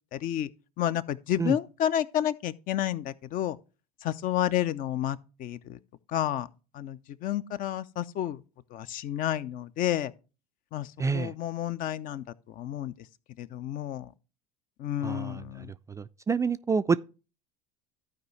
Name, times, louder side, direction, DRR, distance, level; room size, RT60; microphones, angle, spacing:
voice 1, 0.1-0.5 0.8-3.6 4.0-5.8 6.1-6.5 6.7-8.4 8.7-10.1 10.7-12.2 12.6-12.9 13.4-14.1 14.8-15.7, left 11 dB, 45° left, 0.6 m, -30 dB
voice 2, 11.0-11.3 15.0-15.4 15.9-17.0, right 5 dB, 15° right, 0.3 m, -27 dB
14.0 x 4.8 x 3.2 m
hypercardioid pair, 75°, 19 cm